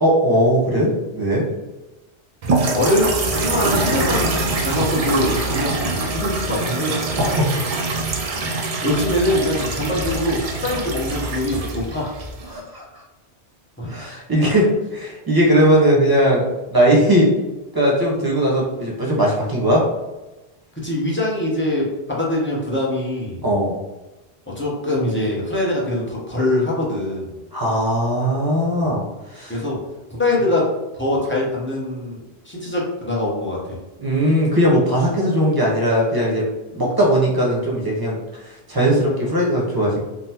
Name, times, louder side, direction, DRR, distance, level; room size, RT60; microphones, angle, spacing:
voice 1, 0.0-1.5 6.8-7.6 12.5-12.8 13.9-16.4 16.7-17.4 17.7-19.9 23.4-23.8 27.5-29.6 34.0-36.5 36.7-40.0, equal, 25° right, -4 dB, 0.7 m, -19 dB
sound 1, 2.4-12.6, right 3 dB, 65° right, 0.3 m, -24 dB
voice 2, 2.7-5.9 6.1-7.0 8.4-8.5 8.8-12.1 13.8-14.0 20.8-23.5 24.5-27.4 29.5-29.8 30.1-33.8, left 1 dB, 15° left, -5 dB, 0.5 m, -23 dB
3.7 x 2.0 x 2.8 m, 1.1 s
omnidirectional pair, 1.2 m